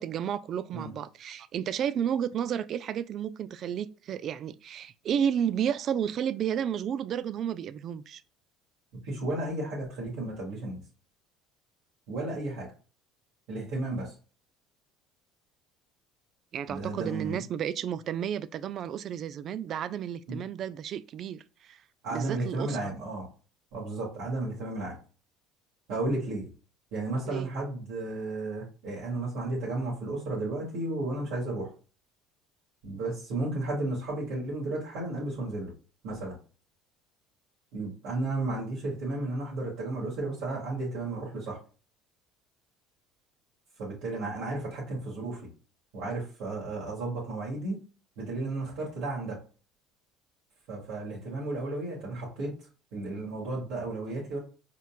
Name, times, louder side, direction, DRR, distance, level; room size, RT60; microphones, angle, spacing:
voice 1, 0.0-8.2 16.5-21.8 22.1-22.9 27.3-27.5, right 9 dB, 50° right, 0.3 m, -32 dB
voice 2, 9.0-10.8 12.1-12.7 13.5-14.1 16.7-17.4 20.3-20.4 22.0-23.3 23.7-24.9 25.9-26.5 26.9-31.7 32.8-35.7 36.0-36.4 37.7-41.6 43.8-45.5 45.9-47.8 48.2-49.4 50.7-52.5 52.9-54.4, right 2 dB, 70° right, 2.0 m, -33 dB
4.2 x 3.9 x 2.3 m
supercardioid pair, 85°, 0 cm